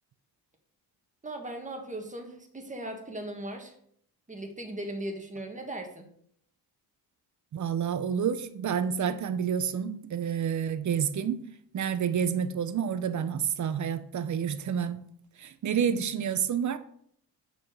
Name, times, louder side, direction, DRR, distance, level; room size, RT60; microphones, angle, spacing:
voice 1, 1.2-3.7 4.3-6.1, right 1 dB, 20° right, 1.6 m, -38 dB
voice 2, 7.5-11.4 11.7-15.1 15.4-16.8, right 8 dB, 50° right, 0.7 m, -29 dB
6.0 x 4.9 x 6.6 m
cardioid pair, 100°, 38 cm